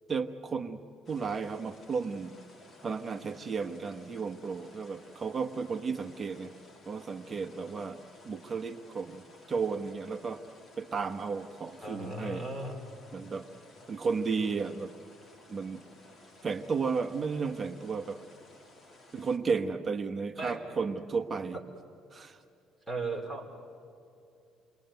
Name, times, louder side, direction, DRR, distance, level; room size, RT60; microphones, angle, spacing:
voice 1, 0.1-0.8 1.1-2.3 2.8-6.5 6.9-8.0 8.2-9.2 9.5-10.4 10.8-12.4 13.1-13.5 13.9-14.9 15.5-15.8 16.4-18.2 19.1-21.6 22.1-22.4, right 5 dB, 25° right, 7 dB, 1.2 m, -33 dB
sound 1, 1.0-19.4, left 2 dB, 30° left, 2.8 m, -56 dB
voice 2, 11.8-12.9 20.4-20.6 22.9-23.5, right 2 dB, ahead, 1 dB, 4.9 m, -36 dB
28.5 x 21.5 x 9.3 m, 2.6 s
cardioid pair, 135°, 0 cm